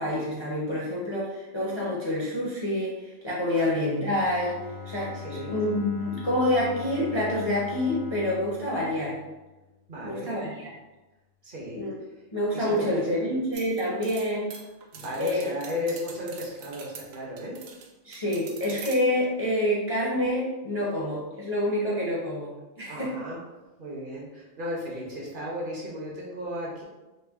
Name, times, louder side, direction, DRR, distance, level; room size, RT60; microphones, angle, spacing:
voice 1, 0.0-9.2 10.0-10.7 11.8-12.0 12.3-14.5 15.2-15.5 18.0-23.1, left 1 dB, 35° left, -6 dB, 0.4 m, -27 dB
voice 2, 3.5-3.9 5.1-5.5 9.9-10.3 11.4-11.9 12.5-13.4 14.9-17.6 22.9-23.4 23.8-26.8, left 1 dB, 50° right, -4 dB, 0.8 m, -35 dB
Bowed string instrument, 4.0-10.0, left 9 dB, 75° left, 1.0 m, -42 dB
sound 1, 13.5-17.9 18.1-19.0, right 6 dB, 85° right, 1.0 m, -44 dB
4.0 x 2.0 x 3.4 m, 1.1 s
omnidirectional pair, 1.4 m